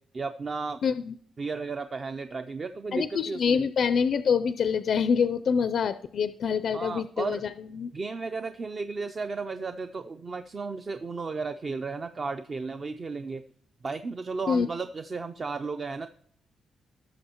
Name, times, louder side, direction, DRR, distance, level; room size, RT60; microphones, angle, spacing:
voice 1, 0.1-0.8 1.4-3.7 6.7-7.4 7.9-13.4 13.8-16.1, right 4 dB, 30° right, 8 dB, 0.4 m, -34 dB
voice 2, 0.8-1.1 2.9-7.4 7.7-7.9 14.5-14.7, left 6 dB, 55° left, 12 dB, 0.4 m, -26 dB
18.0 x 6.8 x 2.9 m, 0.63 s
wide cardioid pair, 155°, 0 cm